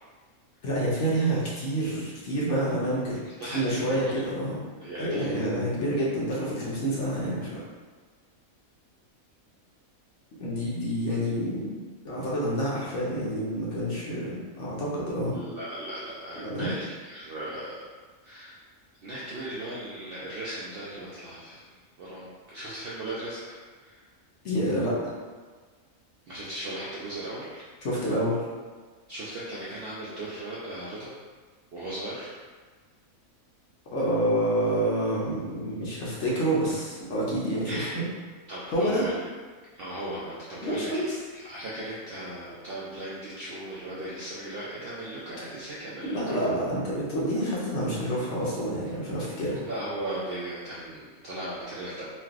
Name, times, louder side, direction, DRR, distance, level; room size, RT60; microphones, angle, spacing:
voice 1, 0.6-3.2 3.4-4.6 5.0-7.6 10.4-11.7 12.0-15.4 16.4-16.7 24.4-25.1 27.8-28.5 33.9-38.0 38.7-39.0 40.6-41.1 46.0-49.7, right 1 dB, 60° left, -6 dB, 0.9 m, -28 dB
voice 2, 3.2-4.3 4.8-5.4 15.3-17.9 18.2-18.6 19.0-21.7 22.0-23.4 23.8-24.1 26.3-27.6 29.1-31.1 31.7-32.4 37.7-38.0 38.5-39.2 39.8-46.3 49.6-52.0, right 1 dB, 65° right, -8 dB, 0.5 m, -37 dB
3.0 x 2.5 x 2.4 m, 1.5 s
omnidirectional pair, 1.5 m